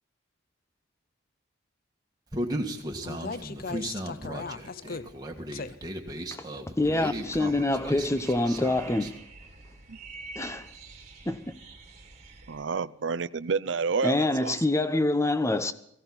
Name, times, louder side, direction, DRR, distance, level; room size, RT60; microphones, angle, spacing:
Human voice, 2.3-9.1, right 1 dB, 20° right, 1.7 m, -36 dB
voice 1, 3.0-5.2 5.5-5.8 6.2-6.6, left 4 dB, 50° left, 0.6 m, -38 dB
voice 2, 6.8-9.2 10.4-10.7 11.3-11.6 14.0-15.7, left 2 dB, 15° left, 0.8 m, -26 dB
sound 1, 6.9-12.6, right 4 dB, 35° right, 1.9 m, -47 dB
voice 3, 12.5-14.5, right 5 dB, 65° right, 0.5 m, -29 dB
18.0 x 16.5 x 4.2 m
head